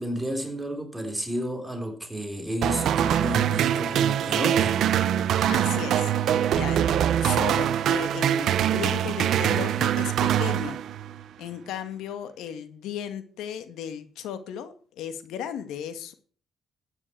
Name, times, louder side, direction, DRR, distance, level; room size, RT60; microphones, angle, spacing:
voice 1, 0.0-4.8, equal, 5° right, 3.7 m, -31 dB
sound 1, 2.6-11.2, right 10 dB, 75° right, 0.9 m, -23 dB
voice 2, 5.5-6.1 6.5-10.8 11.4-16.1, left 9 dB, 90° left, 1.8 m, -35 dB
14.5 x 9.9 x 4.5 m
cardioid pair, 90°, 0 cm